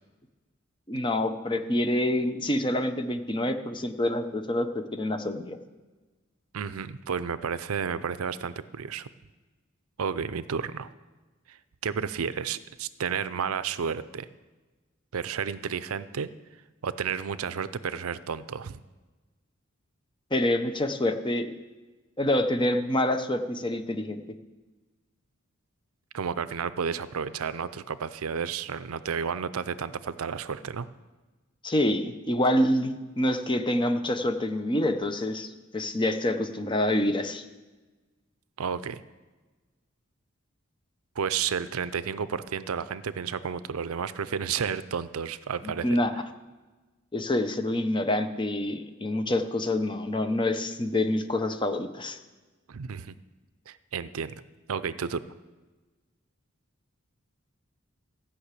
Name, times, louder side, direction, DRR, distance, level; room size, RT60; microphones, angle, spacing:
voice 1, 0.9-5.6 20.3-21.5 22.2-24.2 31.6-37.4 45.8-46.1 47.1-52.2, left 1 dB, 20° left, 8 dB, 0.7 m, -27 dB
voice 2, 6.5-9.1 10.0-10.9 11.5-11.6 11.8-14.3 15.1-16.3 16.8-18.8 26.1-30.9 38.6-39.0 41.2-45.9 52.7-53.2 53.7-54.4 54.7-55.2, right 6 dB, 90° right, 15 dB, 0.5 m, -31 dB
15.0 x 5.8 x 8.2 m, 1.2 s
head